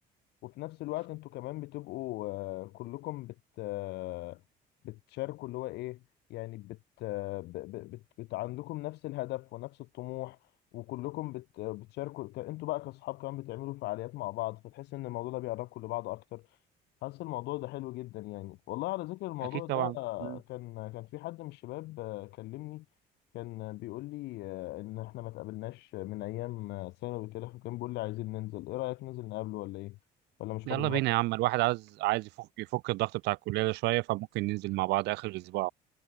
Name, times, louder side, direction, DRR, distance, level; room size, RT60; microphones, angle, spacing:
voice 1, 0.4-4.4 4.8-6.0 6.3-10.4 10.7-16.6 17.0-22.8 23.3-30.0 30.4-31.0, left 19 dB, 85° left, 3.4 m, -38 dB
voice 2, 30.7-35.7, right 20 dB, 85° right, 0.8 m, -30 dB
cardioid pair, 110°, 17 cm